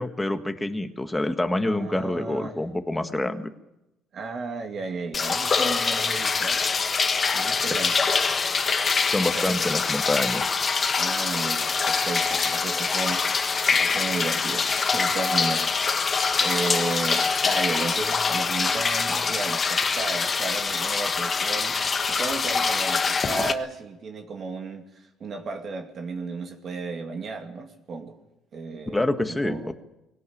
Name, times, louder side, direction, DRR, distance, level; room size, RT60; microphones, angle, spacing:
voice 1, 0.0-3.5 9.1-10.6 28.9-29.7, left 1 dB, 10° left, 7 dB, 1.6 m, -27 dB
voice 2, 1.6-2.6 4.1-6.6 7.3-8.2 9.2-9.6 11.0-28.2 28.5-29.0 29.3-29.7, right 4 dB, 40° right, 4 dB, 2.3 m, -34 dB
sound 1, 5.1-23.5, left 5 dB, 30° left, 1.3 m, -24 dB
22.0 x 17.5 x 8.8 m, 0.90 s
cardioid pair, 130°, 0 cm